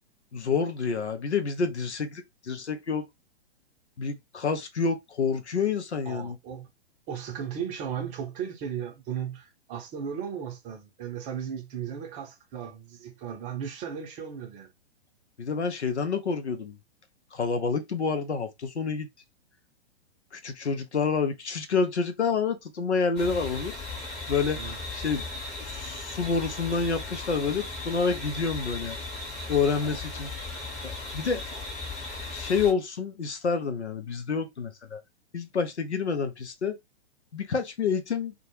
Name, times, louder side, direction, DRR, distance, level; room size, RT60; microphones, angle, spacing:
voice 1, 0.3-3.1 4.0-6.4 15.4-16.8 17.3-19.1 20.3-23.7 24.3-24.6 24.9-25.2 25.6-29.0 29.5-30.3 30.8-31.4 32.3-35.0 35.3-36.8 37.3-38.3, left 5 dB, 90° left, 0.6 m, -28 dB
voice 2, 6.1-6.7 7.1-14.7 24.5-24.8, right 8 dB, 25° right, 0.6 m, -36 dB
sound 1, 23.2-32.7, left 3 dB, 20° left, 0.8 m, -37 dB
2.2 x 2.1 x 2.9 m
figure-of-eight pair, 115°, 33 cm